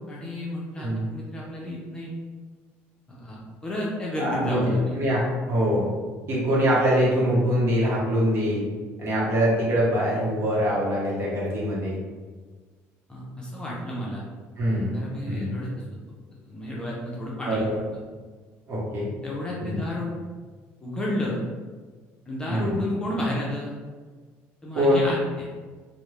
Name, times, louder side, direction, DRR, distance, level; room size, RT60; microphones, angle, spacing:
voice 1, 0.1-2.1 3.1-5.0 13.1-14.2 14.9-15.7 16.5-17.7 19.2-20.1 20.8-21.4 22.3-23.7 24.6-25.5, left 1 dB, 15° left, -5 dB, 0.6 m, -31 dB
voice 2, 4.2-5.9 6.3-8.6 9.0-12.0 14.6-15.0 15.3-15.6 17.5-17.8 18.7-19.1 19.6-19.8 22.5-22.8 24.7-25.1, equal, 50° right, -6 dB, 1.0 m, -23 dB
2.3 x 2.1 x 3.1 m, 1.4 s
cardioid pair, 115°, 5 cm